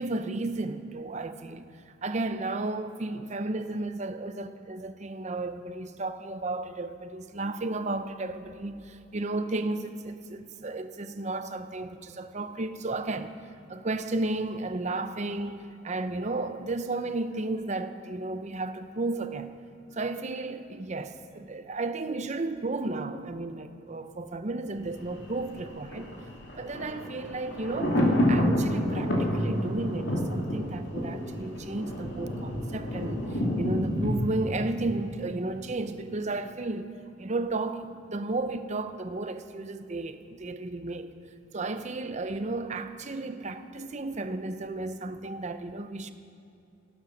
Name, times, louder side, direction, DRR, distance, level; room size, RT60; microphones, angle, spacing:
voice 1, 0.0-1.7 2.0-13.4 13.7-19.6 19.9-26.1 26.6-28.0 28.3-41.1 41.5-46.1, right 2 dB, 40° right, 0.7 m, -33 dB
Thunder, 24.8-35.8 36.1-36.2, equal, 70° left, 2.6 m, -29 dB
14.5 x 12.0 x 5.9 m
head